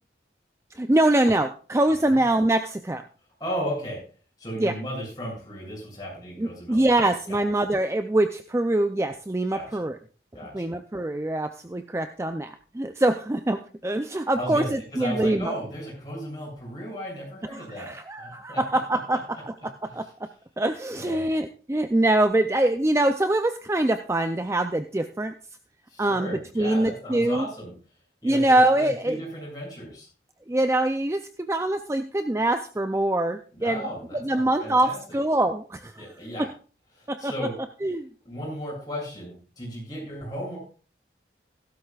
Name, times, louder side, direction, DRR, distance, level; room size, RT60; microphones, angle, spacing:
voice 1, 0.7-3.0 4.6-4.7 6.4-10.0 10.5-15.5 17.4-20.1 20.6-25.3 26.0-27.5 28.2-29.2 30.5-33.8 34.2-36.1 36.4-36.5 37.1-37.3 37.8-38.1, right 1 dB, 15° right, 8 dB, 0.4 m, -24 dB
voice 2, 3.4-4.0 4.4-6.9 7.3-7.4 9.5-9.8 10.3-10.7 14.4-17.9 18.2-18.6 19.8-20.0 20.9-21.3 25.9-27.7 28.2-30.1 33.6-35.0 36.0-36.5 37.0-37.6 38.2-40.6, equal, 20° left, -4 dB, 7.5 m, -35 dB
16.0 x 12.5 x 2.4 m, 0.38 s
head